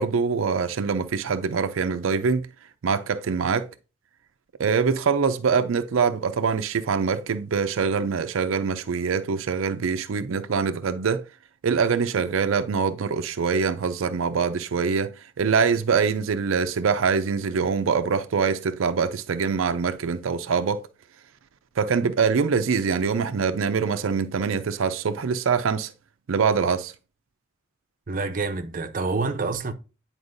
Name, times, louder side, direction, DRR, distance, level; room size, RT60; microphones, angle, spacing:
voice 1, 0.0-2.5 2.8-3.7 4.6-11.2 11.6-20.8 21.8-25.9 26.3-26.9, right 5 dB, 85° right, 0.5 m, -24 dB
voice 2, 28.1-29.7, right 3 dB, 45° right, 0.6 m, -27 dB
9.5 x 4.4 x 2.6 m
head